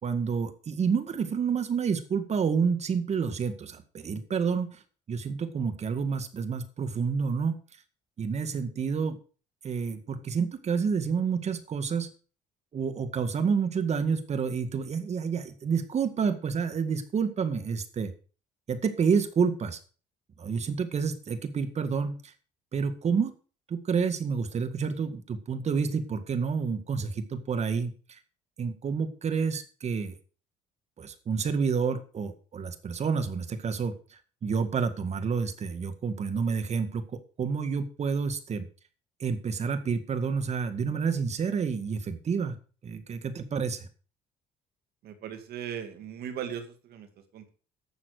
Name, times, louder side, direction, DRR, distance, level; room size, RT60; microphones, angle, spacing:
voice 1, 0.0-4.8 5.1-7.6 8.2-9.2 9.6-12.1 12.7-18.1 18.7-19.8 20.4-22.3 22.7-23.3 23.7-28.2 28.6-30.2 31.0-33.9 34.4-37.0 37.4-38.7 39.2-42.6 42.8-43.9, right 6 dB, 40° right, 10 dB, 1.9 m, -29 dB
voice 2, 45.0-47.5, right 8 dB, 70° right, 7 dB, 2.3 m, -38 dB
11.5 x 7.1 x 6.7 m, 0.38 s
cardioid pair, 110°, 17 cm